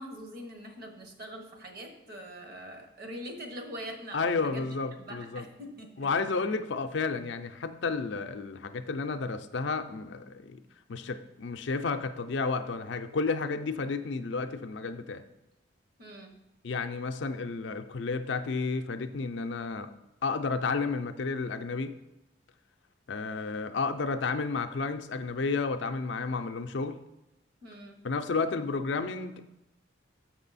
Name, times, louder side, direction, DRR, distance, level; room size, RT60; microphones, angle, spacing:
voice 1, 0.0-6.1 16.0-16.3 27.6-28.0, equal, 50° right, 4 dB, 1.1 m, -43 dB
voice 2, 4.1-5.4 6.0-10.6 10.9-15.2 16.6-19.9 20.2-21.9 23.1-27.0 28.0-29.5, left 4 dB, 65° left, 8 dB, 0.4 m, -31 dB
6.7 x 6.1 x 4.1 m, 0.92 s
head